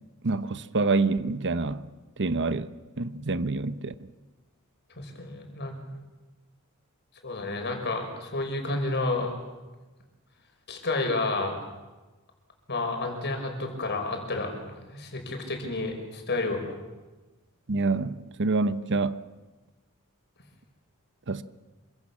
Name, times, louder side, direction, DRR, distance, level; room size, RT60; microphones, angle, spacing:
voice 1, 0.2-1.8 2.2-2.7 3.0-3.9 17.7-19.2 21.3-21.4, right 3 dB, 55° right, 1.0 m, -26 dB
voice 2, 5.0-5.7 7.2-9.3 10.7-11.6 12.7-16.7, left 2 dB, 50° left, 5.7 m, -30 dB
27.5 x 25.0 x 7.3 m
head